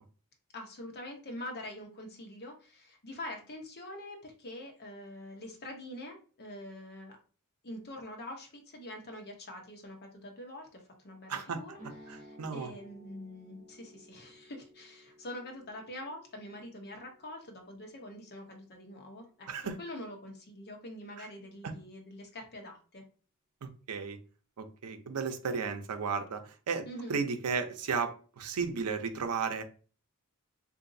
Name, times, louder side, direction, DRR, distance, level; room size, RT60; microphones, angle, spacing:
voice 1, 0.5-7.1 7.6-11.7 12.0-19.5 19.8-23.0 26.9-27.2, left 1 dB, 50° left, 2 dB, 0.8 m, -45 dB
voice 2, 11.3-11.6 12.1-12.7 19.5-19.8 21.2-21.3 21.6-21.7 23.6-24.2 24.6-29.6, right 5 dB, 85° right, 8 dB, 0.5 m, -34 dB
sound 1, 11.7-19.8, equal, 35° right, 1.3 m, -57 dB
3.9 x 2.5 x 2.6 m, 0.39 s
head